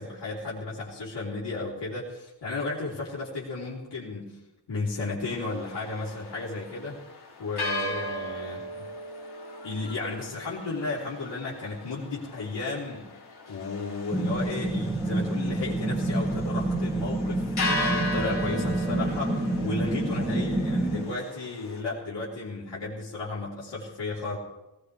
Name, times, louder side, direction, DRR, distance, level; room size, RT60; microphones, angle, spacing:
voice 1, 0.0-4.4 4.7-7.0 7.4-8.9 9.6-13.1 13.5-24.4, left 3 dB, 80° left, -7 dB, 3.5 m, -34 dB
sound 1, 5.3-21.8, left 1 dB, 65° left, 3.0 m, -37 dB
sound 2, 14.1-21.0, right 1 dB, 10° right, 1.2 m, -28 dB
20.0 x 18.5 x 3.3 m, 0.97 s
wide cardioid pair, 145°, 42 cm